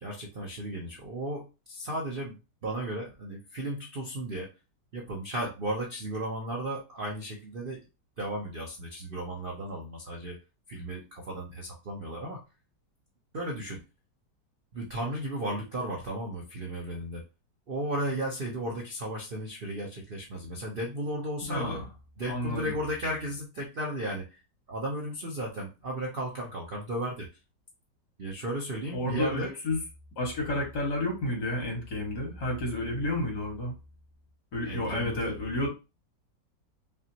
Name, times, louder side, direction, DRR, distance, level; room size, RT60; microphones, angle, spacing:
voice 1, 0.0-4.5 4.9-7.8 8.2-10.4 10.7-12.4 13.3-13.8 14.7-17.2 17.7-21.8 22.2-24.4 24.7-27.4 28.2-29.5 34.6-35.3, right 1 dB, 55° right, 0 dB, 0.6 m, -35 dB
voice 2, 21.4-21.9 22.3-22.7 28.9-29.8 30.2-33.7 34.5-35.7, left 1 dB, 65° left, -1 dB, 2.4 m, -31 dB
5.4 x 2.5 x 2.8 m, 0.29 s
omnidirectional pair, 2.0 m